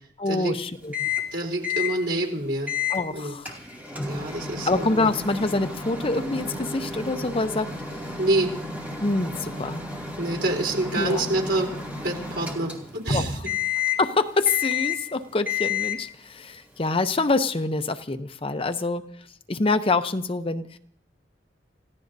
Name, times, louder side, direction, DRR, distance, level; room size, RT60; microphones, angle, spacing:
voice 1, 0.2-1.1 2.9-3.6 4.7-8.0 9.0-9.8 11.0-11.4 13.1-13.2 14.0-19.1 19.5-20.8, left 3 dB, 30° left, 8 dB, 0.7 m, -26 dB
Microwave oven, 0.9-1.3 1.6-2.0 2.7-3.0 3.5-13.1 13.5-14.1 14.5-15.1 15.5-16.1, left 6 dB, 10° right, 2.3 m, -31 dB
voice 2, 1.3-2.7 3.1-3.3 4.1-5.1 8.2-8.5 10.2-11.7 12.0-13.4, right 1 dB, 80° right, 0 dB, 4.1 m, -26 dB
29.0 x 16.0 x 2.7 m, 0.65 s
head